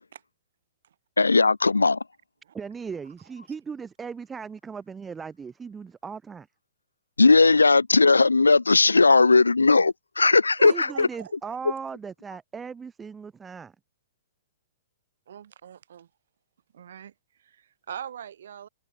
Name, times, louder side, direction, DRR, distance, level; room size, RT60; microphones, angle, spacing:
voice 1, 1.2-2.0 7.2-11.1, left 3 dB, 85° left, 0.6 m, -18 dB
voice 2, 2.5-6.5 10.6-13.8, right 6 dB, 15° right, 2.2 m, -38 dB
voice 3, 10.6-11.6 15.3-16.1 16.7-18.7, right 9 dB, 65° right, 2.6 m, -42 dB
figure-of-eight pair, 110°, 0 cm